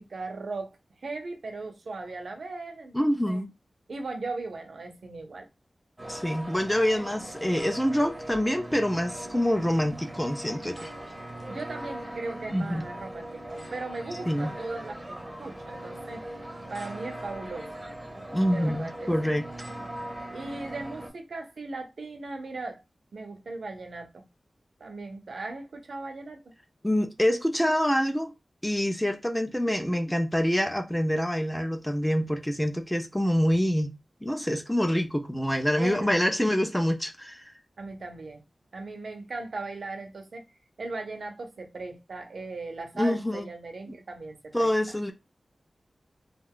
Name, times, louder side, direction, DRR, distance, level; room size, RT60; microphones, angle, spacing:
voice 1, 0.0-3.4 3.9-5.5 11.5-16.2 16.7-17.8 18.4-19.1 20.3-22.8 23.1-24.2 24.8-26.4 35.8-36.4 37.8-38.4 38.7-40.4 40.8-44.7, right 3 dB, 85° right, 0.7 m, -38 dB
voice 2, 2.9-3.5 6.1-10.9 12.5-12.8 14.3-14.5 18.3-19.5 26.8-28.3 28.6-33.9 34.2-37.4 43.0-43.5 44.5-45.1, equal, 5° left, 0.5 m, -26 dB
sound 1, 6.0-21.1, right 1 dB, 20° right, 0.8 m, -40 dB
2.4 x 2.3 x 3.6 m
wide cardioid pair, 100°, 0 cm